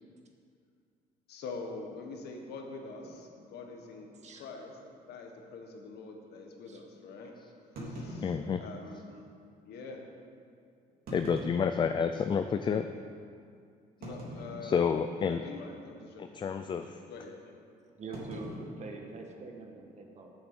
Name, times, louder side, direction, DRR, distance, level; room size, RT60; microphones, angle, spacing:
voice 1, 1.3-4.1 4.3-7.3 7.8-9.2 9.6-10.0 14.0-14.8 15.1-17.5, left 3 dB, 75° left, 2 dB, 1.5 m, -45 dB
sound 1, 3.0-3.2 3.9-4.1 4.4-4.5 5.1-5.2 7.7-9.0 9.8-9.9 10.9-12.3 12.9-13.0 14.0-15.1 15.4-15.7 16.0-16.3 18.1-19.7, equal, 60° right, 2.9 m, -44 dB
voice 2, 8.2-8.6 11.1-12.9 14.6-15.4 16.2-17.0, left 6 dB, 30° left, 8 dB, 0.4 m, -29 dB
voice 3, 18.0-20.3, right 3 dB, 40° right, 2 dB, 1.5 m, -44 dB
7.9 x 6.9 x 7.8 m, 2.3 s
cardioid pair, 110°, 17 cm